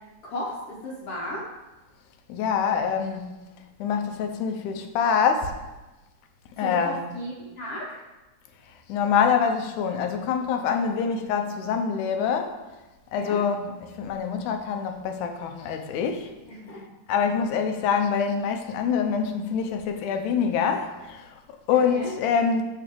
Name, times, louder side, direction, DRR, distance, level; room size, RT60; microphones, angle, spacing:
voice 1, 0.2-1.5 6.6-7.9 13.1-13.4 16.5-16.9 21.7-22.1, equal, 55° left, 2.0 m, -35 dB
voice 2, 2.3-3.3 3.8-5.5 6.6-7.1 8.7-12.5 13.1-16.3 17.1-22.6, left 6 dB, 75° left, 2.3 m, -25 dB
10.5 x 4.2 x 6.8 m
omnidirectional pair, 3.7 m